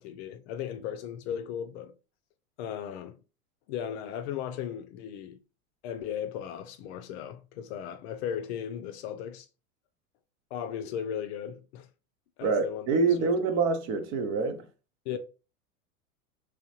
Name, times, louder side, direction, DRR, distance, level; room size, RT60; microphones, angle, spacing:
voice 1, 0.0-1.9 2.6-3.2 3.7-5.4 5.8-9.5 10.5-11.9 12.4-12.9 13.2-13.3 15.1-15.2, left 9 dB, 45° left, 0.6 m, -36 dB
voice 2, 12.4-14.7, right 4 dB, 35° right, 0.8 m, -26 dB
3.5 x 3.3 x 3.0 m
hypercardioid pair, 100°, 45 cm